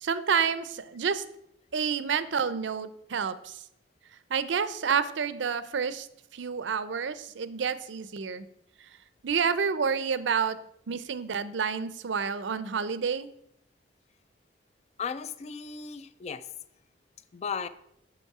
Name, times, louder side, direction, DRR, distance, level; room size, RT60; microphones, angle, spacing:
voice 1, 0.0-1.2 1.7-3.6 4.3-6.1 6.3-8.5 9.2-10.6 10.9-13.3, right 6 dB, 75° right, 14 dB, 0.5 m, -29 dB
voice 2, 15.0-16.5 17.3-17.7, left 6 dB, 35° left, 14 dB, 0.3 m, -35 dB
7.0 x 5.4 x 4.8 m, 0.74 s
head